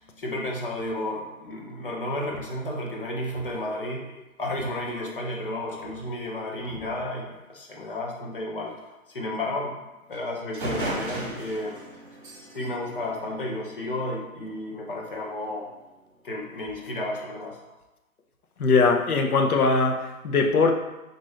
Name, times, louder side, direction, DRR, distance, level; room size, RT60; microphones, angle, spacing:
voice 1, 0.0-4.0 4.4-7.2 7.5-8.7 9.1-9.8 10.1-11.8 12.5-15.7 16.2-17.6, left 1 dB, 40° left, -2 dB, 0.7 m, -32 dB
sound 1, 10.1-10.2 10.5-14.0, right 1 dB, 35° right, 0.8 m, -35 dB
voice 2, 18.6-20.7, left 4 dB, 90° left, 4 dB, 0.8 m, -21 dB
4.0 x 2.6 x 3.2 m, 1.0 s
hypercardioid pair, 165°, 43 cm